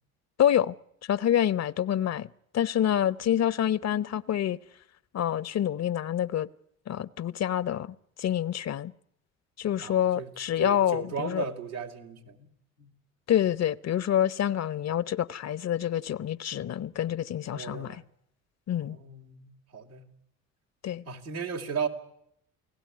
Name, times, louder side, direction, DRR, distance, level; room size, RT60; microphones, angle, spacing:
voice 1, 0.4-0.7 1.1-2.3 2.5-4.6 5.1-6.5 6.9-8.9 9.6-11.4 13.3-18.0 18.7-19.0 20.8-21.0, left 10 dB, 40° left, 0.9 m, -27 dB
voice 2, 9.8-10.3 10.6-12.5 12.8-12.9 17.5-18.0 18.8-20.1 21.1-21.9, right 6 dB, 90° right, 2.6 m, -36 dB
28.5 x 18.0 x 9.7 m
hypercardioid pair, 55°, 42 cm